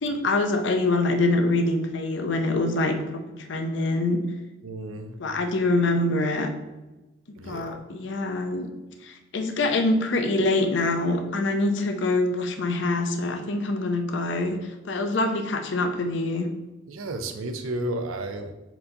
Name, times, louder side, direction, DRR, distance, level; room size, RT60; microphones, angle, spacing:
voice 1, 0.0-4.2 5.2-6.5 7.4-8.7 9.0-16.5, left 2 dB, 60° left, 5 dB, 0.5 m, -25 dB
voice 2, 4.6-5.1 7.4-7.8 16.9-18.5, right 1 dB, 85° right, 7 dB, 0.5 m, -32 dB
4.4 x 2.7 x 3.9 m, 1.1 s
head